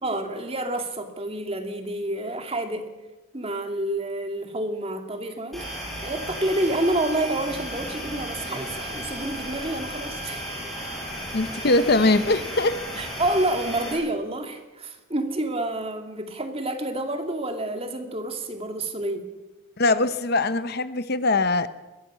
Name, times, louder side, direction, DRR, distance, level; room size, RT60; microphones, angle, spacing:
voice 1, 0.0-2.9 3.3-5.6 6.0-10.5 13.0-19.3, right 1 dB, 25° right, 5 dB, 2.3 m, -28 dB
sound 1, 5.5-13.9, equal, ahead, 6.7 m, -34 dB
voice 2, 11.3-12.8 19.8-21.7, left 2 dB, 45° left, 13 dB, 0.8 m, -21 dB
22.0 x 16.5 x 7.4 m, 1.1 s
head